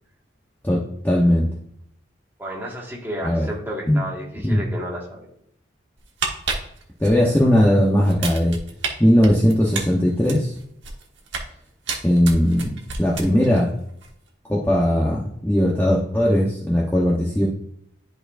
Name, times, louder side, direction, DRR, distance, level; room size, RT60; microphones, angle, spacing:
voice 1, 0.6-1.5 3.2-3.5 3.9-4.0 4.4-4.6 7.0-8.6 9.0-10.5 12.0-12.7 13.0-13.7 14.5-17.5, equal, 10° left, -4 dB, 0.8 m, -18 dB
voice 2, 2.4-5.3, equal, 10° right, -4 dB, 1.6 m, -32 dB
sound 1, 6.0-7.7 8.0-8.9 9.2-11.5 11.9-13.6 13.9-14.1, right 5 dB, 65° right, 1.2 m, -30 dB
10.5 x 4.5 x 2.5 m, 0.70 s
head